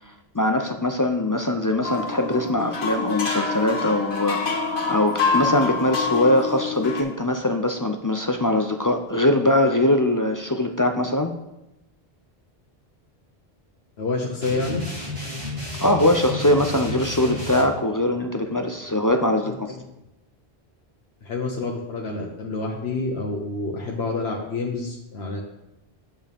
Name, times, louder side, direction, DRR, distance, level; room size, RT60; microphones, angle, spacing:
voice 1, 0.3-4.6 4.9-11.3 15.8-19.8, left 1 dB, 35° left, 5 dB, 0.3 m, -22 dB
sound 1, 1.8-7.0, left 4 dB, 55° left, 1.3 m, -26 dB
voice 2, 14.0-14.9 19.4-19.5 21.2-25.4, left 3 dB, 75° left, -1 dB, 1.2 m, -28 dB
sound 2, 14.4-17.6, left 2 dB, 70° right, 3.6 m, -32 dB
8.9 x 7.3 x 3.5 m, 0.91 s
omnidirectional pair, 1.1 m